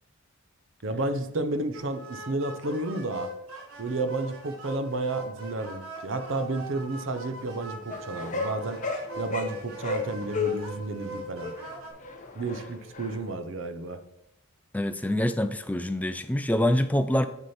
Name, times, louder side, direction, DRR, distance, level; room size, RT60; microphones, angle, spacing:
voice 1, 0.8-3.3 3.8-8.8 9.2-11.5 12.3-14.0, right 2 dB, 60° right, 10 dB, 0.7 m, -31 dB
sound 1, 1.7-11.9, right 2 dB, 75° right, 1.6 m, -41 dB
sound 2, 7.9-10.7 11.2-13.3, left 4 dB, 35° left, 0.9 m, -34 dB
voice 2, 14.7-17.3, left 1 dB, 5° left, 9 dB, 0.3 m, -25 dB
7.4 x 6.4 x 4.3 m, 0.84 s
head